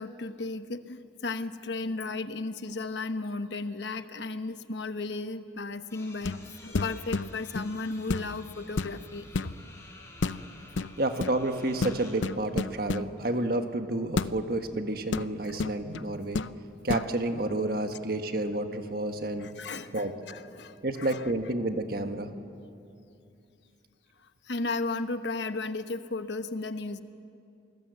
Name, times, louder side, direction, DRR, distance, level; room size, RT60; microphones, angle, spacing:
voice 1, 0.0-9.3 15.5-15.6 19.4-21.2 24.5-27.0, left 3 dB, 70° left, 10 dB, 1.0 m, -35 dB
sound 1, 5.9-12.1, left 2 dB, 15° left, 4.0 m, -52 dB
sound 2, 6.2-6.5 6.7-7.7 8.1-8.4 8.7-9.5 10.2-10.4 10.8-11.4 11.8-13.1 14.2-14.3 15.1-16.1 16.3-16.5 16.9-17.1, left 3 dB, 85° left, 0.6 m, -31 dB
voice 2, 11.0-16.4 16.8-19.5 19.9-20.1 20.8-22.3, right 2 dB, 50° right, 6 dB, 1.5 m, -30 dB
28.0 x 20.0 x 8.2 m, 2.5 s
head